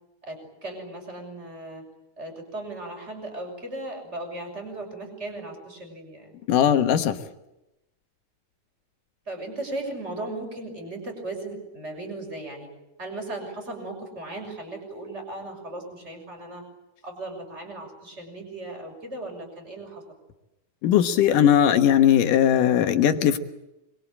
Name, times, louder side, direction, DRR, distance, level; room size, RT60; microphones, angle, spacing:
voice 1, 0.2-1.8 2.2-6.4 9.3-12.7 13.0-16.6 17.0-20.0, right 2 dB, 20° right, 3 dB, 6.5 m, -37 dB
voice 2, 6.5-7.2 20.8-23.4, left 10 dB, 75° left, 7 dB, 2.8 m, -19 dB
26.0 x 23.0 x 8.7 m, 0.92 s
omnidirectional pair, 3.9 m